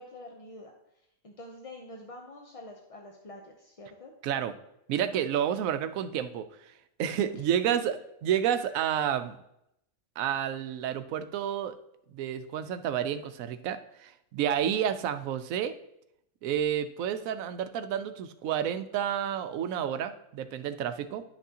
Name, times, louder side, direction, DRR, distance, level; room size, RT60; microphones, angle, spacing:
voice 1, 0.0-4.1 7.4-7.5 14.6-14.7, left 1 dB, 35° left, 1 dB, 0.6 m, -47 dB
voice 2, 4.2-4.5 4.9-6.5 7.0-8.0 8.2-9.4 10.2-11.8 12.1-15.7 16.4-21.2, right 9 dB, 85° right, 11 dB, 1.0 m, -30 dB
10.5 x 5.9 x 2.8 m, 0.80 s
omnidirectional pair, 1.4 m